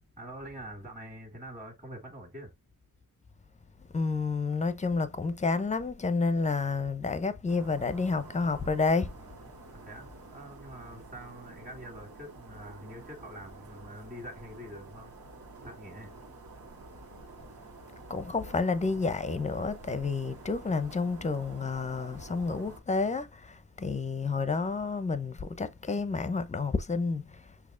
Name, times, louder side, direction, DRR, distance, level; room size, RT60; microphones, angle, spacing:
voice 1, 0.2-2.5 9.7-15.1 15.6-16.1, equal, 20° right, 1.9 m, -45 dB
voice 2, 3.9-9.1 18.1-27.5, left 4 dB, 20° left, 0.6 m, -30 dB
sound 1, 7.5-22.8, right 3 dB, 80° right, 1.8 m, -49 dB
6.4 x 2.8 x 2.5 m
cardioid pair, 80°, 35 cm